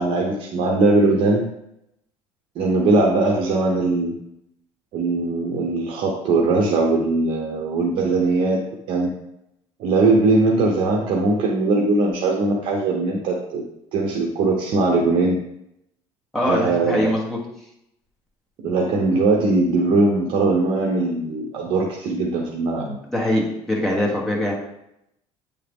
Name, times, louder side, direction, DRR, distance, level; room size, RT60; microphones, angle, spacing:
voice 1, 0.0-1.4 2.6-4.1 4.9-8.6 8.9-9.1 9.8-13.6 13.9-15.4 16.4-17.1 18.6-23.0, right 3 dB, 55° right, -1 dB, 0.8 m, -20 dB
voice 2, 16.3-17.4 23.1-24.5, left 1 dB, 5° left, -4 dB, 1.3 m, -22 dB
8.6 x 3.7 x 3.5 m, 0.81 s
cardioid pair, 165°, 11 cm